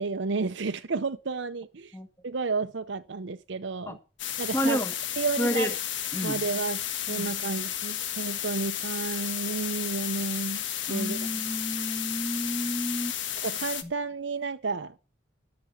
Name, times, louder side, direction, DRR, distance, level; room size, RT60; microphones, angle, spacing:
voice 1, 0.0-2.0 2.2-4.0 4.4-4.8 5.2-5.8 6.2-6.8 7.1-10.6 10.9-11.2 13.4-15.0, right 4 dB, 75° right, 0.7 m, -31 dB
sound 1, 4.2-13.8, left 10 dB, 80° left, 1.4 m, -33 dB
voice 2, 4.5-4.9 5.4-5.7 6.1-6.4 7.1-7.3 10.9-13.1 13.8-13.9, equal, 15° left, 1.4 m, -30 dB
12.5 x 6.9 x 7.3 m
head